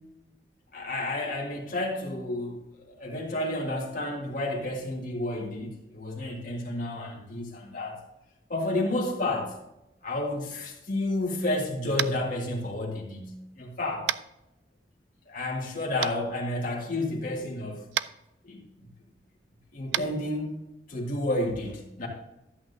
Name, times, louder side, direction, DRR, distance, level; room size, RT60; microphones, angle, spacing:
voice 1, 0.7-8.0 8.5-9.6 10.0-14.1 15.3-17.9 18.4-18.9 19.7-20.5 20.9-22.1, left 1 dB, 50° left, -2 dB, 1.7 m, -31 dB
Tap, 11.9-12.2 14.1-14.2 16.0-16.1 17.9-18.1 19.9-20.0, right 11 dB, 75° right, 0.3 m, -28 dB
13.0 x 8.5 x 2.7 m, 0.91 s
head